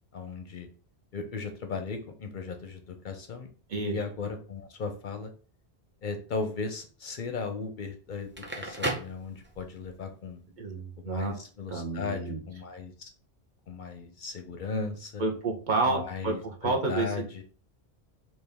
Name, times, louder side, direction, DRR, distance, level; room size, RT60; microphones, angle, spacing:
voice 1, 0.1-0.7 1.1-3.5 3.8-5.3 6.0-8.3 8.6-10.4 11.0-13.1 13.7-15.2 15.8-17.4, left 4 dB, 55° left, 6 dB, 0.6 m, -36 dB
Crackle, 8.2-9.9, right 1 dB, 15° right, 0.6 m, -34 dB
voice 2, 10.6-11.3 11.7-12.4 15.2-16.3 16.6-17.1, right 3 dB, 55° right, 2 dB, 0.7 m, -29 dB
4.2 x 2.3 x 3.3 m, 0.39 s
omnidirectional pair, 1.1 m